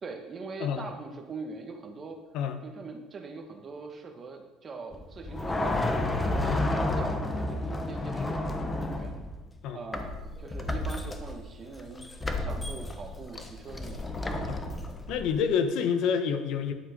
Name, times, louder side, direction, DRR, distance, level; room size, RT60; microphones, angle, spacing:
voice 1, 0.0-2.2 2.6-9.2 9.7-14.1 14.3-14.5, right 4 dB, 30° right, 4 dB, 1.5 m, -42 dB
sound 1, 4.9-9.5 9.9-15.4, left 2 dB, 15° left, 1.0 m, -31 dB
voice 2, 15.1-16.7, left 7 dB, 65° left, 8 dB, 1.2 m, -28 dB
10.5 x 7.6 x 5.3 m, 1.2 s
cardioid pair, 140°, 0 cm